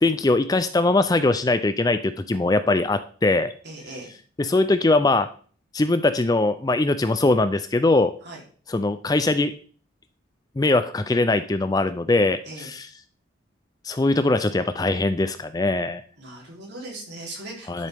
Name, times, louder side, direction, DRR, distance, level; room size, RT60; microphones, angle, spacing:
voice 1, 0.0-3.5 4.4-5.3 5.7-8.1 8.7-9.5 10.6-12.9 13.8-16.0 17.7-17.9, left 2 dB, 20° left, 11 dB, 0.4 m, -21 dB
voice 2, 3.6-4.1 8.2-8.4 12.4-12.7 16.2-17.9, right 2 dB, 55° right, -2 dB, 3.3 m, -39 dB
11.5 x 6.7 x 3.5 m, 0.43 s
head